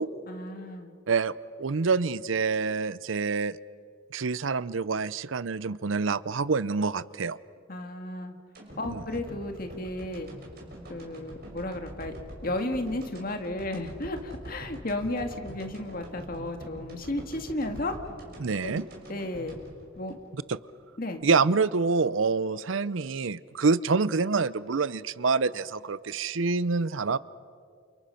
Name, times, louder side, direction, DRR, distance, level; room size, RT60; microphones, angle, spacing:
voice 1, 0.3-0.9 7.7-8.3 8.8-10.3 10.9-12.1 12.4-18.0 18.6-18.8 19.1-19.5 20.0-20.2 21.0-21.3, left 1 dB, 45° left, 5 dB, 2.0 m, -33 dB
voice 2, 1.6-3.6 4.1-7.4 8.9-9.0 18.4-18.8 20.5-20.6 21.2-27.2, right 4 dB, 80° right, 18 dB, 0.6 m, -26 dB
sound 1, 8.5-20.8 21.1-21.2, equal, 50° right, 6.1 m, -45 dB
29.5 x 28.5 x 5.8 m, 2.2 s
head